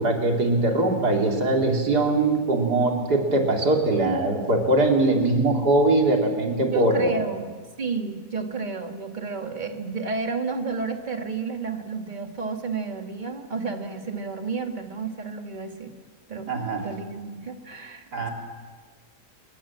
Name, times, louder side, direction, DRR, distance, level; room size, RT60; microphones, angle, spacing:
voice 1, 0.0-7.2 16.5-16.9 18.1-18.3, right 2 dB, 85° right, 1 dB, 3.9 m, -21 dB
voice 2, 6.7-7.4 7.8-15.9 16.3-16.5 16.8-18.0, right 4 dB, 30° right, 4 dB, 2.1 m, -31 dB
27.0 x 22.0 x 7.5 m, 1.5 s
omnidirectional pair, 1.7 m